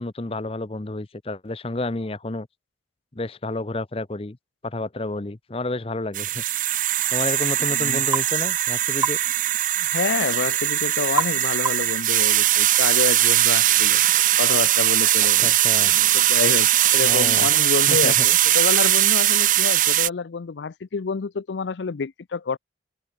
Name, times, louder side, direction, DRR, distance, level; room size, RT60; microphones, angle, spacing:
voice 1, 0.0-2.5 3.1-4.4 4.6-6.4 7.1-9.2 15.4-15.9 17.0-17.5 17.9-18.3, left 2 dB, 30° left, 0.8 m, -30 dB
sound 1, 6.1-20.1, right 13 dB, 45° right, 0.7 m, -20 dB
voice 2, 7.7-8.0 9.8-14.0 14.4-15.5 16.1-22.6, left 5 dB, 85° left, 0.5 m, -28 dB
sound 2, 8.1-8.3 9.0-9.2 11.2-11.4 11.6-12.0, right 4 dB, 15° right, 0.3 m, -25 dB
open air
head